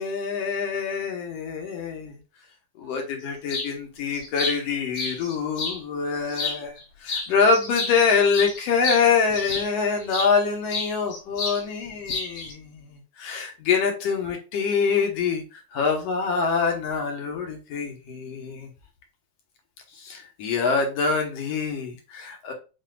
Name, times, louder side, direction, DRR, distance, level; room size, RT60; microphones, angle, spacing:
voice 1, 0.0-2.2 2.8-18.7 19.9-22.5, left 5 dB, 65° left, 3 dB, 1.9 m, -25 dB
sound 1, 3.5-3.7 4.1-5.8 6.3-6.8 7.1-10.3 10.7-11.6 11.9-12.5, left 3 dB, 85° left, 3.3 m, -31 dB
7.6 x 2.8 x 2.3 m, 0.31 s
omnidirectional pair, 3.5 m